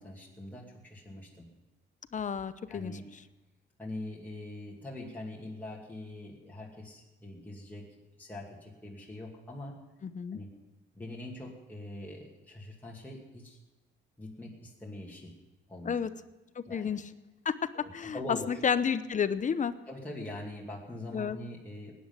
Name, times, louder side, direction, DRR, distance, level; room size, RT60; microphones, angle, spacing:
voice 1, 0.0-1.5 2.7-3.0 3.8-9.8 10.3-10.5 10.9-13.6 14.2-15.4 15.7-16.0 16.6-16.9 17.7-18.6 19.9-21.9, left 1 dB, 10° left, -4 dB, 2.6 m, -43 dB
voice 2, 2.1-3.0 10.0-10.4 15.8-16.1 16.6-17.1 17.4-17.6 17.9-18.2 18.5-19.7 21.1-21.4, left 7 dB, 40° left, 13 dB, 0.8 m, -31 dB
17.0 x 10.5 x 7.4 m, 1.1 s
cardioid pair, 90°, 20 cm